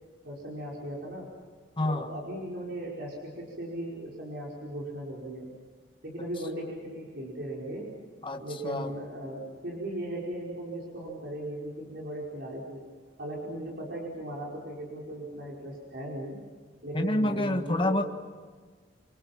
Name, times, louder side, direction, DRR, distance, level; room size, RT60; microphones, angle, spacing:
voice 1, 0.2-1.3 1.8-5.5 6.0-7.9 8.4-12.8 13.2-16.4 16.8-18.0, right 1 dB, 65° right, -3 dB, 5.2 m, -37 dB
voice 2, 1.8-2.2 8.2-9.0 16.9-18.0, left 1 dB, 30° left, 5 dB, 1.6 m, -28 dB
28.0 x 25.0 x 6.0 m, 1.6 s
head